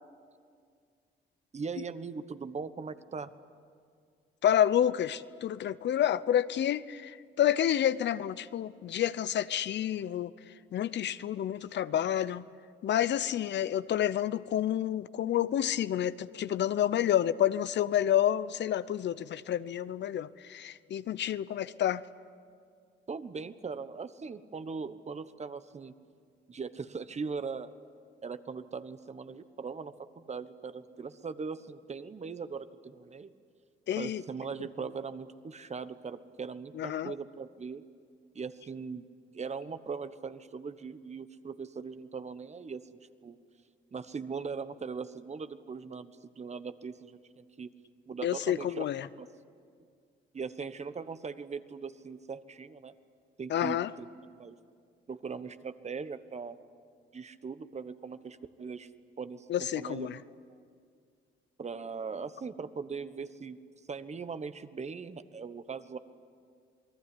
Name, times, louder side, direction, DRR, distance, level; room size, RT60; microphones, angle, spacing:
voice 1, 1.5-3.3 23.1-25.9 26.5-27.7 28.2-33.3 33.9-37.8 38.3-39.1 39.3-42.9 43.2-43.4 43.9-47.7 48.1-48.8 49.2-49.3 50.3-52.9 53.4-54.1 54.4-54.6 55.1-56.6 57.1-58.9 59.2-59.5 59.7-60.1 60.5-60.6 61.6-63.6 63.9-66.0, right 5 dB, 35° right, 12 dB, 1.2 m, -40 dB
voice 2, 4.4-10.3 10.7-12.4 12.8-22.0 33.9-34.2 36.8-37.1 48.2-49.1 53.5-53.9 59.5-60.2, left 11 dB, 65° left, 15 dB, 0.7 m, -29 dB
28.0 x 19.5 x 9.9 m, 2.2 s
cardioid pair, 90°, 20 cm